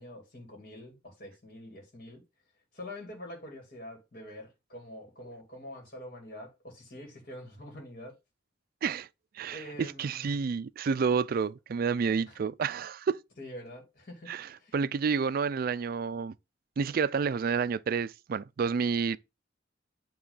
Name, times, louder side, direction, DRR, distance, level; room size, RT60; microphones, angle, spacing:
voice 1, 0.0-2.2 2.7-8.1 9.5-10.5 12.3-12.4 13.4-14.3 14.6-14.7, left 1 dB, 50° left, 2.4 m, -45 dB
voice 2, 9.4-13.2 14.3-16.3 16.8-19.2, right 5 dB, 50° right, 0.3 m, -29 dB
8.7 x 3.0 x 5.3 m
head